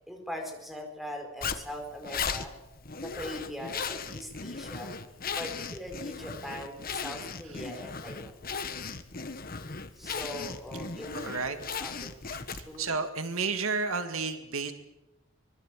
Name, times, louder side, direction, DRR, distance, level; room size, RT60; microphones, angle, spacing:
voice 1, 0.1-2.5 3.0-4.9 5.3-8.4 9.9-11.3 11.8-12.1 12.7-12.9, equal, ahead, 3 dB, 5.1 m, -41 dB
Zipper (clothing), 1.4-12.9, left 5 dB, 40° left, 1.5 m, -37 dB
voice 2, 11.1-11.6 12.3-14.7, right 4 dB, 75° right, 8 dB, 2.1 m, -32 dB
24.5 x 22.0 x 7.5 m, 0.94 s
head